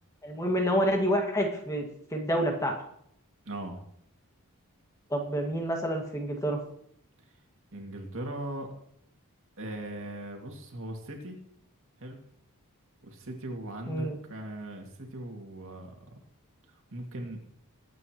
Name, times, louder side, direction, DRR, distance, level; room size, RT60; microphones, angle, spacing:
voice 1, 0.2-1.9 2.1-2.7 5.1-6.6 13.9-14.2, equal, 15° left, 1 dB, 2.0 m, -28 dB
voice 2, 3.5-3.8 7.7-8.7 9.6-11.4 12.0-12.2 13.0-16.1 16.7-17.4, right 1 dB, 60° right, 2 dB, 2.4 m, -39 dB
21.5 x 9.0 x 3.1 m, 0.69 s
head